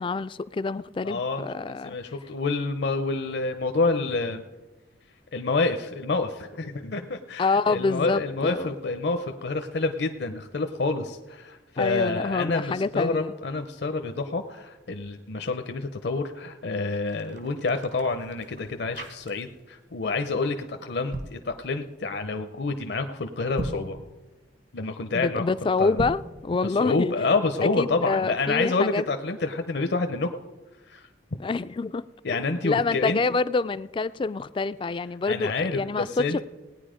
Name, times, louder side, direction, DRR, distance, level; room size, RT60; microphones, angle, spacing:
voice 1, 0.0-2.0 7.4-8.7 11.8-13.3 25.1-27.1 27.6-29.1 31.4-32.0 32.3-36.4, left 4 dB, 25° left, 0.3 m, -27 dB
voice 2, 1.0-4.4 5.3-24.0 24.7-26.0 26.6-30.3 30.9-31.1 32.2-33.2 35.3-36.4, left 3 dB, 60° left, 0.7 m, -28 dB
sound 1, 16.8-19.7 20.0-20.3 20.9-21.4 23.4-23.9 25.9-26.3, right 1 dB, 65° right, 1.8 m, -37 dB
18.0 x 9.6 x 5.0 m
head